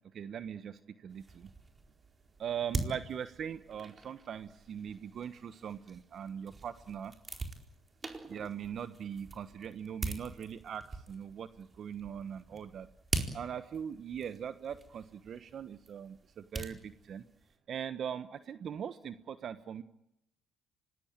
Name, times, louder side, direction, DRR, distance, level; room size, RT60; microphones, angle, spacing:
voice 1, 0.1-1.5 2.4-7.1 8.3-12.9 13.3-17.2 17.7-19.8, right 8 dB, 55° right, 12 dB, 1.3 m, -41 dB
sound 1, 1.1-17.6, right 3 dB, 25° right, 4.4 m, -43 dB
25.5 x 19.0 x 9.0 m, 0.80 s
supercardioid pair, 70°, 0 cm